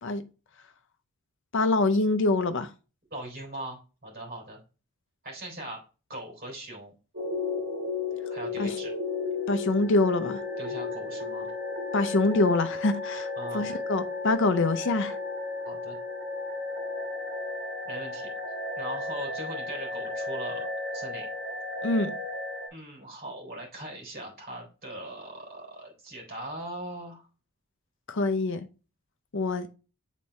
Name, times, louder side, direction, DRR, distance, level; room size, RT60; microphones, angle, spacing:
voice 1, 1.5-2.7 8.6-8.8 9.5-10.4 11.9-13.3 13.5-15.2 21.8-22.1 28.1-28.7 29.3-29.7, left 2 dB, 55° left, 0.7 m, -25 dB
voice 2, 3.1-4.6 5.2-5.8 6.1-6.9 8.3-8.9 10.6-11.5 13.4-13.8 15.6-16.0 17.8-18.3 18.8-20.7 20.9-21.3 22.7-27.3, right 1 dB, 45° right, 3.3 m, -40 dB
sound 1, 7.1-22.7, left 3 dB, 60° right, 1.8 m, -34 dB
7.4 x 4.1 x 3.2 m
head